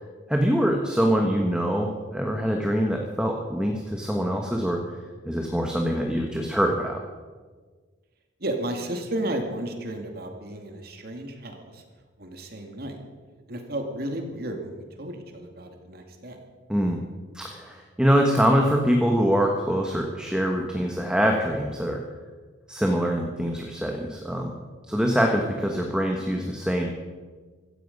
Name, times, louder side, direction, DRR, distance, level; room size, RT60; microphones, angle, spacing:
voice 1, 0.3-4.8 5.2-7.0 16.7-17.0 17.3-22.0 22.7-24.5 24.9-26.9, equal, 5° right, 1 dB, 1.3 m, -24 dB
voice 2, 8.4-11.8 12.2-13.0 13.5-16.4, right 1 dB, 55° right, 4 dB, 2.3 m, -33 dB
16.5 x 14.5 x 5.4 m, 1.4 s
head